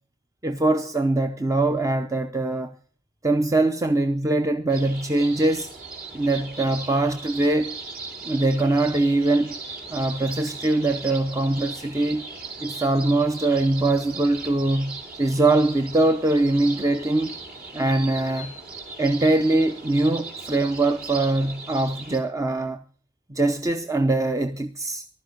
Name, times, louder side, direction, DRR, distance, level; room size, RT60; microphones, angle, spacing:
voice 1, 0.4-2.7 3.2-5.7 6.1-7.8 8.2-9.6 9.9-12.2 12.6-17.4 17.7-18.5 19.0-22.8 23.3-25.0, right 2 dB, 15° right, 0.6 m, -22 dB
sound 1, 4.7-22.2, right 3 dB, 50° right, 3.0 m, -38 dB
15.5 x 12.0 x 6.4 m
head